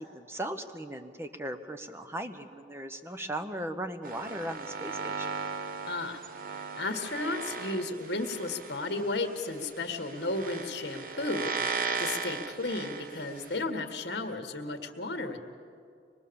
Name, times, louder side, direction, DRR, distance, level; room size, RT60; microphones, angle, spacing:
voice 1, 0.0-5.3, right 1 dB, 15° right, 8 dB, 1.0 m, -38 dB
sound 1, 4.0-13.6, right 5 dB, 50° right, 0.9 m, -37 dB
voice 2, 5.9-6.2 6.5-15.4, left 2 dB, 65° left, 5 dB, 1.8 m, -34 dB
25.0 x 21.5 x 7.1 m, 2.4 s
head